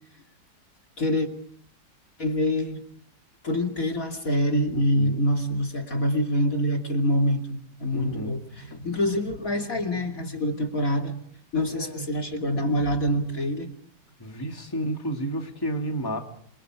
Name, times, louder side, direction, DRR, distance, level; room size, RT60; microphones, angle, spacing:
voice 1, 1.0-1.3 2.2-2.8 3.4-11.2 11.5-13.7, equal, 50° left, 3 dB, 3.0 m, -25 dB
voice 2, 4.7-5.2 7.9-8.4 11.6-12.1 14.2-16.2, right 1 dB, 10° left, 3 dB, 2.7 m, -31 dB
29.0 x 23.5 x 5.0 m, 0.62 s
omnidirectional pair, 1.9 m